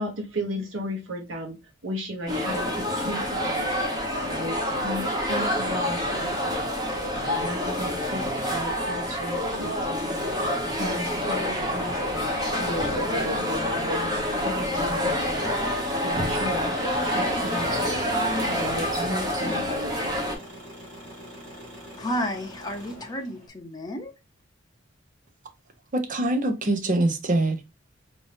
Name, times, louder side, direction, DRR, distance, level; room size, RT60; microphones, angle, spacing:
voice 1, 0.0-1.6 1.8-6.6 7.2-9.7 10.6-12.3 12.6-15.2 16.0-16.7 17.0-20.2, equal, 80° right, 1.0 m, -35 dB
sound 1, 2.3-20.4, left 1 dB, 20° right, 1.0 m, -27 dB
Engine, 15.4-23.5, equal, 60° right, 2.3 m, -41 dB
voice 2, 22.0-24.1, equal, 20° left, 0.7 m, -31 dB
voice 3, 25.9-27.6, right 2 dB, 40° right, 0.7 m, -24 dB
4.2 x 2.7 x 3.3 m
head